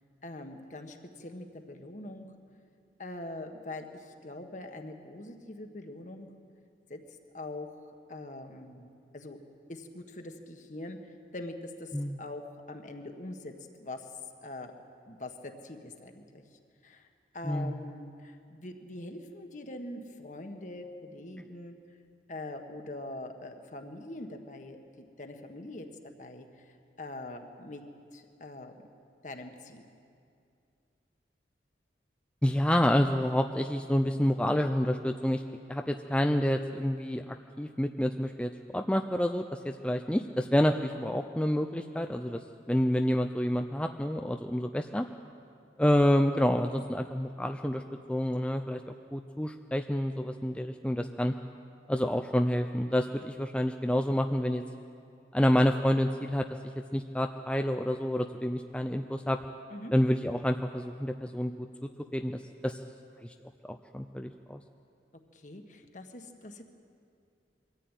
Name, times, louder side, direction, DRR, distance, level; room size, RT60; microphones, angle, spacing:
voice 1, 0.2-2.3 3.0-6.3 6.9-7.0 7.3-9.4 9.7-14.1 14.4-14.7 15.1-17.1 17.3-21.7 22.3-25.9 26.2-27.8 28.1-28.7 29.2-29.8 59.7-59.9 65.3-66.6, left 2 dB, 45° left, 5 dB, 1.6 m, -43 dB
voice 2, 32.4-35.4 35.7-42.4 42.7-45.1 45.8-47.8 48.1-48.8 49.1-51.3 51.9-54.6 55.3-56.5 56.9-59.4 59.9-61.5 62.1-62.8 63.2-63.3 63.7-64.6, equal, 5° left, 5 dB, 0.5 m, -28 dB
23.0 x 14.0 x 9.2 m, 2.4 s
head